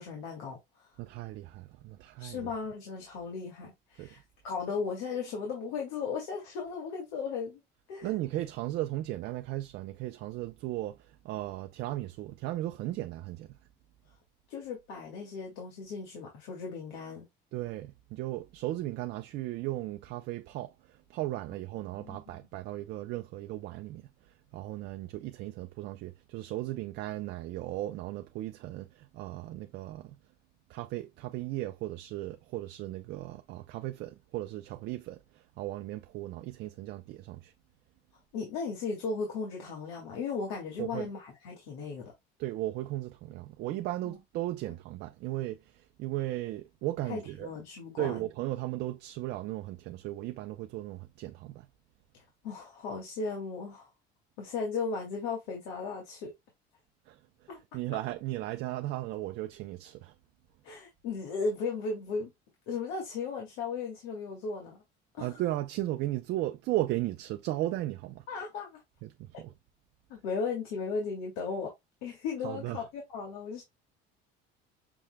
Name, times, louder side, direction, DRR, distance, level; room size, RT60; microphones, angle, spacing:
voice 1, 0.0-0.9 2.2-7.6 7.9-8.1 14.5-17.3 22.0-22.4 38.3-42.1 44.1-44.2 47.1-48.2 52.1-53.9 54.4-56.3 57.5-57.6 60.6-62.3 62.7-64.8 65.1-65.3 68.3-68.8 70.1-71.7 72.0-73.6, left 4 dB, 80° left, 2.0 m, -36 dB
voice 2, 1.0-2.5 4.0-4.1 8.0-13.6 17.5-30.2 30.7-37.5 40.8-41.1 42.4-47.5 48.0-51.7 57.1-60.1 65.2-68.3 69.0-69.5 72.4-72.9, right 15 dB, 55° right, 0.5 m, -36 dB
6.8 x 3.2 x 2.2 m
cardioid pair, 145°, 20 cm